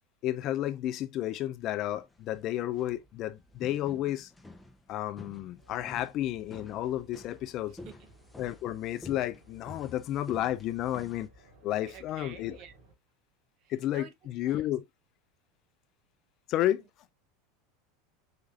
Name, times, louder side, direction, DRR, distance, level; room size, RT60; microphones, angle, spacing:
voice 1, 0.2-4.3 4.9-7.8 8.4-11.3 11.6-12.6 13.7-14.8 16.5-16.8, left 13 dB, 50° left, 0.5 m, -32 dB
sound 1, 1.6-11.3, left 2 dB, 10° left, 0.7 m, -50 dB
sound 2, 5.6-12.9, right 1 dB, 70° right, 2.4 m, -59 dB
voice 2, 11.9-12.7 13.6-14.1 14.4-14.7, right 8 dB, 50° right, 0.9 m, -49 dB
5.0 x 3.2 x 2.5 m
hypercardioid pair, 85°, 0 cm